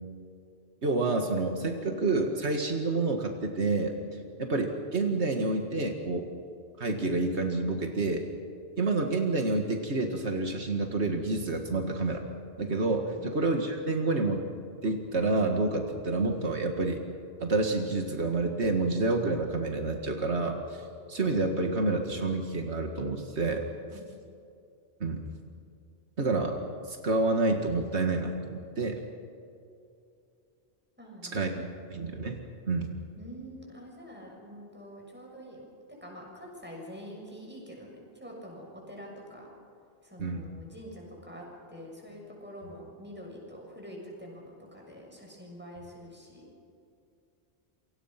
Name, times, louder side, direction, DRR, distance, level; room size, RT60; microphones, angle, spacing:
voice 1, 0.8-3.9 4.4-6.3 6.8-8.2 8.8-12.2 12.6-14.4 14.8-17.0 17.4-23.7 25.0-25.2 26.2-26.6 26.9-29.0 31.3-32.4 32.7-32.9 40.2-40.5, right 3 dB, 80° right, 3 dB, 2.2 m, -28 dB
voice 2, 31.0-32.1 33.2-35.7 36.0-39.5 40.0-46.5, equal, 10° right, -1 dB, 7.0 m, -46 dB
28.0 x 25.0 x 5.9 m, 2.6 s
omnidirectional pair, 1.1 m